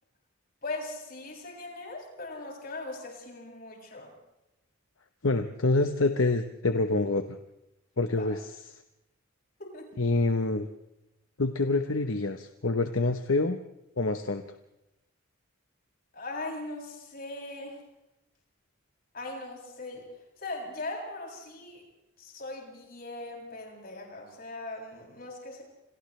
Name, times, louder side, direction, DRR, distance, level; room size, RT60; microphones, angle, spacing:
voice 1, 0.6-4.1 8.1-8.3 9.6-9.9 16.1-17.8 19.1-20.1 20.4-21.8 22.2-25.6, left 2 dB, 45° left, -1 dB, 7.3 m, -39 dB
voice 2, 5.2-7.4 8.0-8.6 10.0-10.7 11.4-13.6 14.0-14.4, left 2 dB, 65° left, 7 dB, 1.0 m, -26 dB
30.0 x 27.5 x 3.3 m, 0.93 s
head